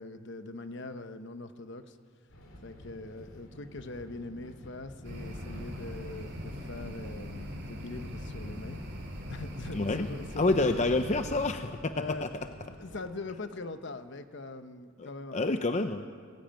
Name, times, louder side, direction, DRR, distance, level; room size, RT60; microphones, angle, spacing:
voice 1, 0.0-2.0 2.6-8.8 9.3-11.0 11.9-12.3 12.7-15.6, left 3 dB, 60° left, 10 dB, 1.0 m, -42 dB
sound 1, 2.3-13.1, left 1 dB, 75° left, 2.8 m, -50 dB
sound 2, 5.0-11.5, equal, 55° right, 3.2 m, -41 dB
voice 2, 9.7-10.1 10.4-12.3 15.0-16.1, left 2 dB, 35° left, 8 dB, 0.6 m, -28 dB
19.0 x 16.0 x 9.0 m, 2.3 s
head